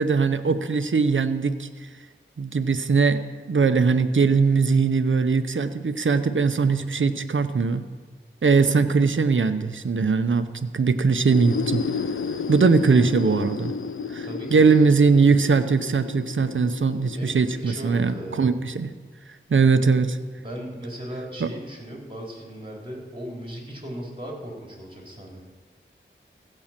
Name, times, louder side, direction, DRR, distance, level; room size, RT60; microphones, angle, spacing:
voice 1, 0.0-1.7 2.4-3.2 3.5-7.9 8.4-11.8 12.5-13.7 14.1-18.9 19.5-20.2 21.4-21.5, right 4 dB, 70° right, 10 dB, 0.7 m, -20 dB
voice 2, 6.7-7.0 12.9-13.4 14.2-15.1 17.2-18.6 20.4-25.4, right 1 dB, 25° right, -1 dB, 3.5 m, -37 dB
sound 1, 11.1-18.8, left 5 dB, 85° left, 0.5 m, -32 dB
15.5 x 5.4 x 7.4 m, 1.4 s
wide cardioid pair, 45°, 21 cm